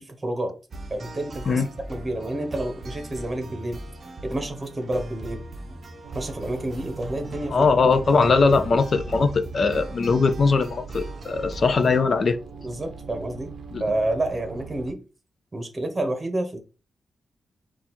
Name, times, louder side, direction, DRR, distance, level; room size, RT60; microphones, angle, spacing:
voice 1, 0.2-0.5 0.9-1.6 1.9-3.8 4.2-5.4 6.1-7.6 8.1-8.4 12.6-13.5 13.8-15.0 15.5-16.6, right 1 dB, 20° right, 1.0 m, -29 dB
sound 1, 0.7-12.0, right 1 dB, 35° right, 0.6 m, -39 dB
sound 2, 6.0-14.9, right 4 dB, 70° right, 0.6 m, -41 dB
voice 2, 7.5-12.4 13.7-13.8, left 4 dB, 45° left, 0.4 m, -20 dB
4.1 x 2.4 x 4.3 m
wide cardioid pair, 150°, 0 cm